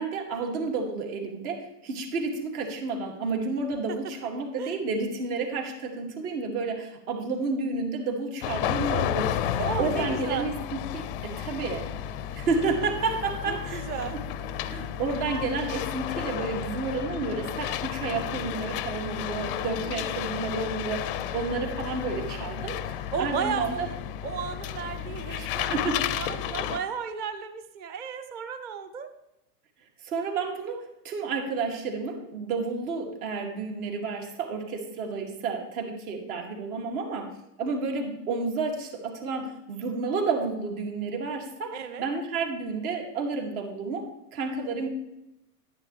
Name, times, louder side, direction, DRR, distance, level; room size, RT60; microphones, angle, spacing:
voice 1, 0.0-11.9 12.3-13.8 14.7-23.9 25.4-26.0 30.0-37.3 37.6-44.9, right 4 dB, 65° right, 2 dB, 2.3 m, -31 dB
sound 1, 8.4-26.8, left 10 dB, 40° left, 0.4 m, -32 dB
voice 2, 9.6-10.5 13.5-14.2 19.6-20.2 23.1-23.9 24.2-29.1 41.7-42.0, right 7 dB, 20° right, 9 dB, 0.5 m, -34 dB
11.0 x 10.5 x 3.2 m, 0.87 s
hypercardioid pair, 140°, 47 cm